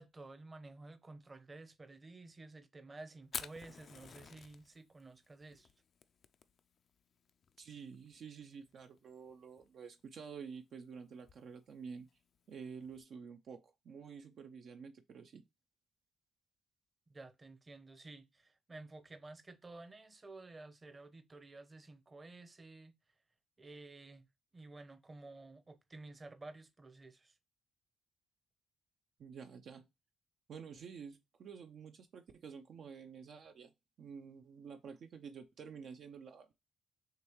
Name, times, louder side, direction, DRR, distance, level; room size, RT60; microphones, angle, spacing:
voice 1, 0.0-5.7 17.1-22.9 23.6-24.2 24.5-27.3, right 2 dB, 25° right, 0.8 m, -53 dB
Fire, 3.2-13.0, left 6 dB, 55° left, 0.4 m, -52 dB
voice 2, 7.6-12.1 12.5-15.4 29.2-29.9 30.5-33.7 34.0-36.6, right 6 dB, 60° right, 0.5 m, -50 dB
6.5 x 2.3 x 3.1 m
cardioid pair, 90°, 0 cm